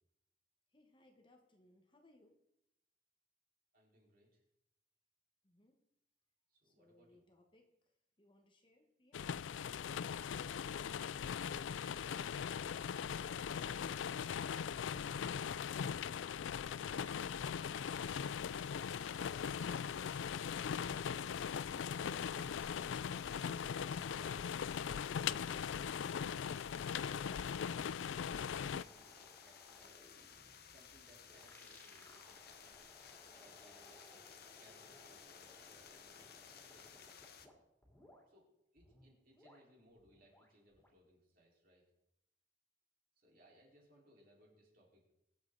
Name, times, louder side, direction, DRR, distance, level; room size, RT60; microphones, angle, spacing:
voice 1, 0.7-2.3 5.4-5.8 6.6-11.3, left 1 dB, 25° left, 3 dB, 1.5 m, -68 dB
voice 2, 3.7-4.4 6.5-7.2 22.3-22.9 23.2-24.5 27.7-30.1 30.6-33.0 33.4-34.2 34.6-36.3 36.7-37.1 38.3-38.5 38.7-41.8 43.2-45.1, equal, 50° right, -3 dB, 4.6 m, -67 dB
sound 1, 9.1-28.8, left 7 dB, 80° left, 0.4 m, -40 dB
sound 2, 17.9-37.5, left 7 dB, 55° left, 1.1 m, -58 dB
sound 3, 27.2-37.5 37.8-38.2 38.8-41.0, equal, 10° left, 3.1 m, -63 dB
23.5 x 8.0 x 4.0 m, 0.82 s
head